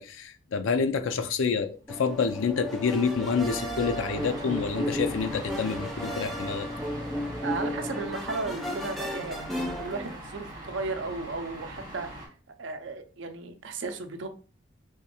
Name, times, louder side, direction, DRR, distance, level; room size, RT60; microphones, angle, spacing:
voice 1, 0.0-6.7, left 5 dB, 80° left, 0.4 m, -28 dB
sound 1, 0.9-12.3, right 1 dB, 25° right, 1.4 m, -42 dB
sound 2, 1.9-10.2, left 1 dB, ahead, 0.4 m, -34 dB
voice 2, 7.4-12.3 12.6-14.3, right 3 dB, 65° right, 0.5 m, -35 dB
3.5 x 3.1 x 2.9 m
head